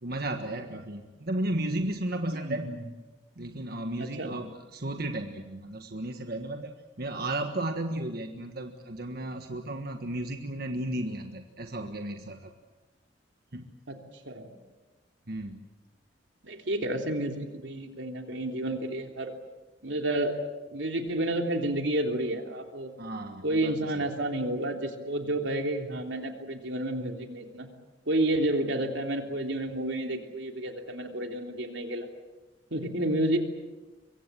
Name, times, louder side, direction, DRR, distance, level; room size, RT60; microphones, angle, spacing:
voice 1, 0.0-2.7 3.4-12.5 13.5-13.7 15.3-15.6 23.0-24.0, right 1 dB, 60° right, 5 dB, 1.5 m, -34 dB
voice 2, 2.3-2.8 4.0-4.3 13.9-14.0 14.2-14.5 16.4-19.3 19.8-20.3 20.7-22.9 23.4-27.7 28.1-32.1 32.7-33.4, right 1 dB, 90° right, 3 dB, 3.3 m, -30 dB
25.0 x 23.5 x 7.6 m, 1.2 s
head